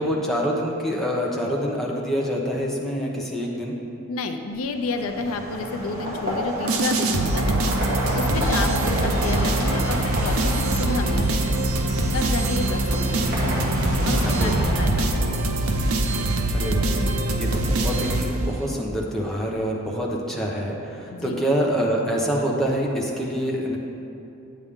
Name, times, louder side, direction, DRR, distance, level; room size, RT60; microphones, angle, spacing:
voice 1, 0.0-3.8 14.3-14.7 16.5-17.0 17.4-23.8, equal, ahead, -4 dB, 0.8 m, -26 dB
voice 2, 4.1-7.7 8.1-13.6 14.0-15.6 21.0-21.4, left 3 dB, 70° left, 6 dB, 0.5 m, -31 dB
sound 1, 4.7-15.6, equal, 40° right, 2.0 m, -29 dB
sound 2, 6.7-18.8, right 2 dB, 80° right, 0.7 m, -23 dB
9.0 x 8.3 x 3.6 m, 2.8 s
head